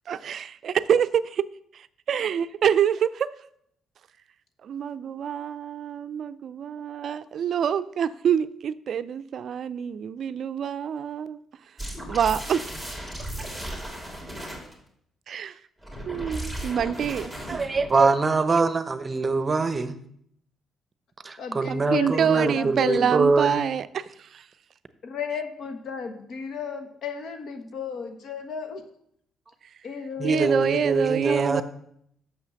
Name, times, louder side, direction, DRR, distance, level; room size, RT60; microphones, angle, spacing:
voice 1, 0.1-1.4 2.1-3.3 4.6-11.4 12.1-12.6 15.3-15.5 16.0-17.6 21.7-24.1 24.3-24.4 30.2-31.6, right 8 dB, 60° right, 14 dB, 0.4 m, -26 dB
sound 1, 11.8-14.7 15.8-18.0, right 1 dB, 5° left, 2.6 m, -35 dB
voice 2, 17.5-20.0 21.2-23.6 30.2-31.6, right 4 dB, 30° right, 11 dB, 0.7 m, -23 dB
voice 3, 21.4-23.2 25.0-28.8 29.8-31.6, left 6 dB, 65° left, 7 dB, 1.3 m, -34 dB
6.4 x 5.6 x 7.0 m, 0.70 s
cardioid pair, 90°, 0 cm